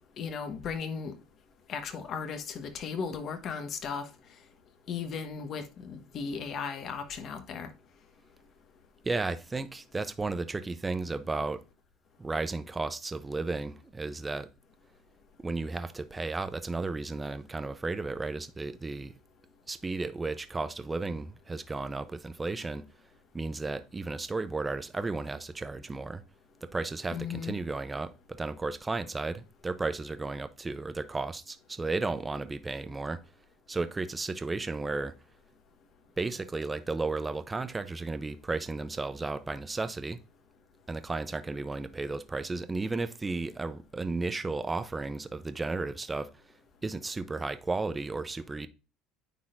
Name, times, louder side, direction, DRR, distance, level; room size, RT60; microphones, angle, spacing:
voice 1, 0.2-1.1 1.7-4.1 4.9-7.7 27.1-27.5, left 6 dB, 50° left, 1.2 m, -36 dB
voice 2, 9.0-11.6 12.2-14.5 15.4-19.1 19.7-22.9 23.3-26.2 26.6-33.2 33.7-35.1 36.2-40.2 40.9-46.3 46.8-48.7, right 3 dB, 15° right, 0.6 m, -34 dB
9.5 x 4.2 x 2.5 m
supercardioid pair, 105°, 0 cm